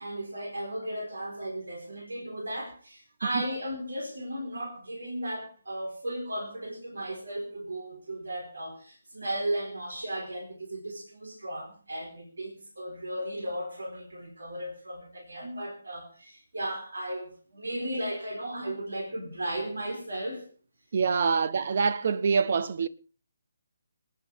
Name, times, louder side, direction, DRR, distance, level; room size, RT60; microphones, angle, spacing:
voice 1, 0.0-20.5, right 1 dB, 70° right, 4.1 m, -35 dB
voice 2, 20.9-22.9, right 5 dB, 50° right, 0.7 m, -25 dB
26.5 x 9.6 x 3.5 m
figure-of-eight pair, 140°, 0 cm